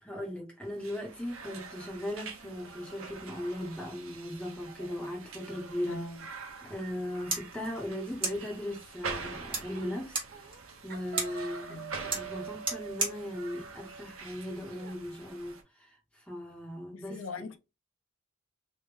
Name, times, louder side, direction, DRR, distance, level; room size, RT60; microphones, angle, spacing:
voice 1, 0.0-6.0 6.7-10.6 10.8-17.2, left 1 dB, 5° left, 1.3 m, -38 dB
sound 1, 0.6-15.6, right 4 dB, 75° right, 0.8 m, -45 dB
voice 2, 5.9-6.2 11.3-12.1 16.9-17.6, left 3 dB, 70° left, 0.6 m, -42 dB
sound 2, 6.9-14.9, right 4 dB, 25° right, 1.5 m, -39 dB
sound 3, 9.7-10.0 10.3-10.6 10.9-15.0, right 7 dB, 45° right, 0.7 m, -46 dB
3.4 x 2.6 x 3.5 m
head